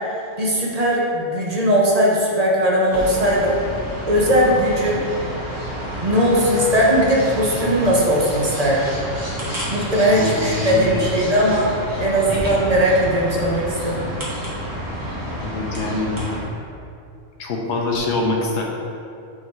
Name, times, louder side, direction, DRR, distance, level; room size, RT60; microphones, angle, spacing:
voice 1, 0.4-3.6 4.1-5.0 6.0-8.8 9.7-11.7 12.0-14.0, equal, 35° right, -4 dB, 0.9 m, -19 dB
sound 1, 2.9-16.4, right 1 dB, 15° right, 1.4 m, -29 dB
voice 2, 10.0-11.1 15.4-16.1 17.4-18.6, left 2 dB, 65° left, -1 dB, 1.2 m, -24 dB
6.8 x 3.7 x 4.7 m, 2.5 s
omnidirectional pair, 1.3 m